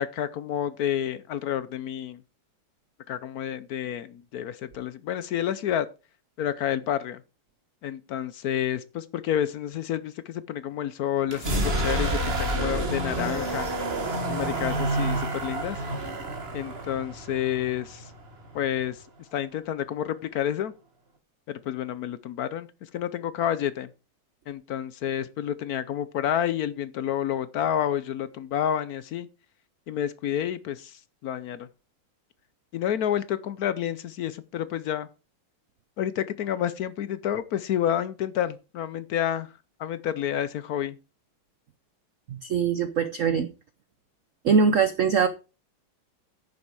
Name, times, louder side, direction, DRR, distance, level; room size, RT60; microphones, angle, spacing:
voice 1, 0.0-2.2 3.1-5.9 6.4-7.2 7.8-13.7 14.3-15.8 16.5-18.1 18.5-19.0 19.3-20.7 21.5-22.7 22.9-23.9 24.5-29.3 29.9-31.7 32.7-35.1 36.0-39.5 39.8-41.0, left 10 dB, 70° left, 0.9 m, -29 dB
sound 1, 11.3-19.0, right 1 dB, 30° right, 1.7 m, -29 dB
voice 2, 42.3-43.5 44.4-45.3, right 6 dB, 65° right, 0.7 m, -22 dB
9.7 x 7.1 x 4.7 m
omnidirectional pair, 2.1 m